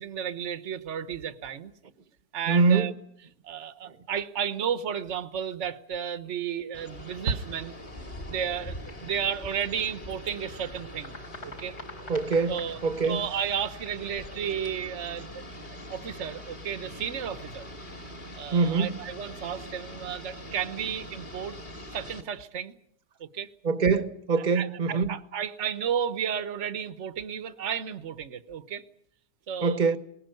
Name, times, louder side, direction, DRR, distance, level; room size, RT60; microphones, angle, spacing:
voice 1, 0.0-1.7 2.3-2.9 3.4-7.8 8.3-11.2 11.4-11.8 12.5-15.4 15.9-17.7 18.3-21.6 21.9-22.8 23.2-23.5 24.5-28.8 29.5-29.8, right 8 dB, 50° right, 1.3 m, -33 dB
voice 2, 2.5-2.9 12.1-13.3 18.5-19.0 23.6-25.1 29.6-30.0, right 4 dB, 30° right, 1.3 m, -24 dB
sound 1, 6.7-22.2, left 1 dB, 30° left, 2.6 m, -43 dB
sound 2, 8.9-10.3 10.6-12.8 13.2-14.3, left 2 dB, 65° left, 4.9 m, -47 dB
20.5 x 20.0 x 9.0 m
omnidirectional pair, 1.8 m